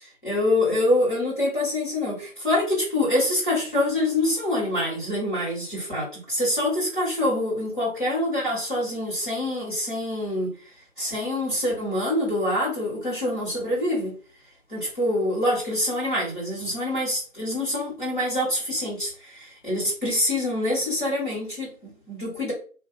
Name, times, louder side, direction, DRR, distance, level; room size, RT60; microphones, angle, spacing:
voice 1, 0.0-10.5 11.0-14.1 14.7-22.5, left 1 dB, 35° left, -6 dB, 1.4 m, -25 dB
2.5 x 2.0 x 3.6 m, 0.39 s
figure-of-eight pair, 170°, 43 cm